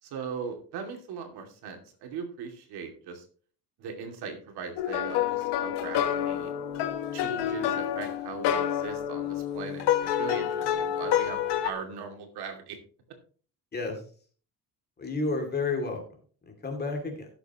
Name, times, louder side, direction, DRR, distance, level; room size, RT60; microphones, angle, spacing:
voice 1, 0.0-3.3 3.8-6.5 7.1-12.8, right 6 dB, 70° right, 4 dB, 2.6 m, -39 dB
sound 1, 4.8-11.7, left 10 dB, 80° left, 1.2 m, -28 dB
voice 2, 13.7-14.0 15.0-16.0 16.5-17.3, left 3 dB, 25° left, 3 dB, 2.6 m, -31 dB
17.0 x 6.9 x 3.0 m, 0.42 s
cardioid pair, 160°, 41 cm